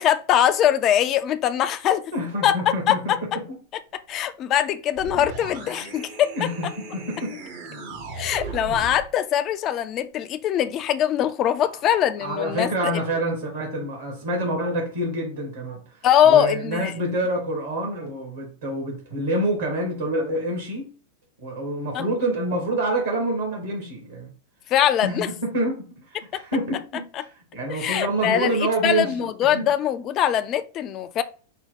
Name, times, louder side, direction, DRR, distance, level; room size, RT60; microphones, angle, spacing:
voice 1, 0.0-2.0 2.4-2.6 2.9-3.2 4.1-6.3 8.2-13.0 16.0-16.9 21.9-22.0 24.7-25.3 26.3-26.4 27.2-27.3 27.7-31.2, left 10 dB, 35° left, 0.4 m, -22 dB
voice 2, 2.1-3.1 6.4-7.3 8.2-8.5 11.6-11.8 12.2-15.8 16.2-20.9 21.4-24.3 25.0-25.8 26.2-29.3 29.5-29.7, right 1 dB, 65° right, 1.9 m, -27 dB
sound 1, 5.0-9.1, right 3 dB, 50° right, 1.0 m, -36 dB
5.5 x 2.3 x 3.9 m
figure-of-eight pair, 90°, 0 cm